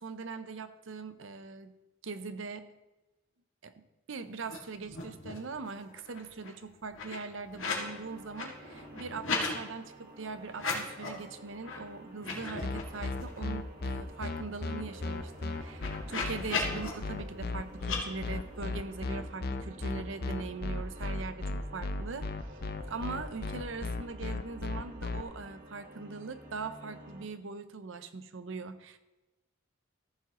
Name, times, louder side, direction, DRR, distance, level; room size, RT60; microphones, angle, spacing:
voice 1, 0.0-1.7 2.0-2.7 3.6-22.6 22.9-29.0, right 4 dB, 70° right, 11 dB, 0.7 m, -41 dB
sound 1, 4.4-4.6 4.8-5.5 5.8-7.9 8.2-9.5 10.5-11.2 11.6-11.8 12.1-13.5 13.9-14.0 14.2-16.9 17.8-18.0, left 4 dB, 75° left, 2.0 m, -37 dB
sound 2, 7.6-27.3, right 1 dB, 45° right, 1.5 m, -51 dB
sound 3, 12.6-25.2, left 3 dB, 50° left, 0.6 m, -35 dB
14.5 x 7.3 x 3.0 m, 1.1 s
head